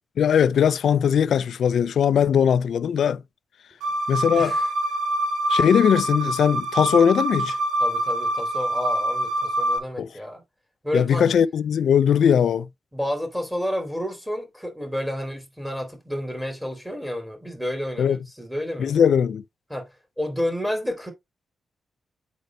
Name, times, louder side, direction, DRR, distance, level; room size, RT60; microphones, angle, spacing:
voice 1, 0.2-3.2 4.1-4.5 5.5-7.6 10.0-10.1 10.9-12.7 18.0-18.2 18.8-19.4, left 8 dB, 75° left, 0.5 m, -20 dB
sound 1, 3.8-9.8, right 1 dB, 80° right, 1.5 m, -25 dB
voice 2, 4.3-4.7 7.8-10.4 10.8-11.2 12.9-19.0 19.7-21.1, equal, 5° right, 3.3 m, -30 dB
8.0 x 5.2 x 3.1 m
wide cardioid pair, 120°, 0 cm